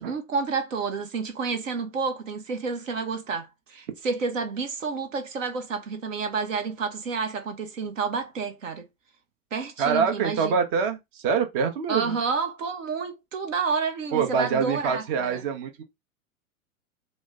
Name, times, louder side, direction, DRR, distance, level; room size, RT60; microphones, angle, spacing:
voice 1, 0.0-8.8 9.5-10.5 11.9-15.4, right 5 dB, 65° right, 0.9 m, -30 dB
voice 2, 9.8-12.1 14.1-15.8, right 6 dB, 40° right, 0.8 m, -25 dB
3.0 x 2.0 x 3.5 m
figure-of-eight pair, 100°, 42 cm